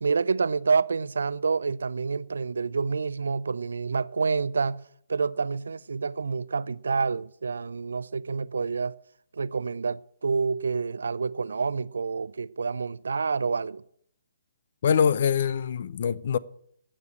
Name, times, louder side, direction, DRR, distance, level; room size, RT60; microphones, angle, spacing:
voice 1, 0.0-4.8 5.1-9.0 9.3-13.8, right 5 dB, 65° right, 0.4 m, -28 dB
voice 2, 14.8-16.4, left 7 dB, 45° left, 0.5 m, -24 dB
16.0 x 6.7 x 7.7 m
figure-of-eight pair, 135°, 0 cm